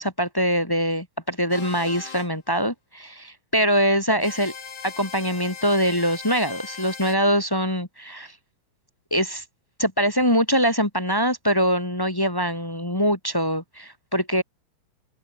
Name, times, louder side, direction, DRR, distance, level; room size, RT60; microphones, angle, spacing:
voice 1, 0.0-4.5 4.8-8.3 9.1-9.4 9.8-14.4, equal, 20° left, 0.6 m, -23 dB
sound 1, 1.5-2.3 4.2-7.2, left 6 dB, 65° left, 6.9 m, -39 dB
open air
omnidirectional pair, 4.9 m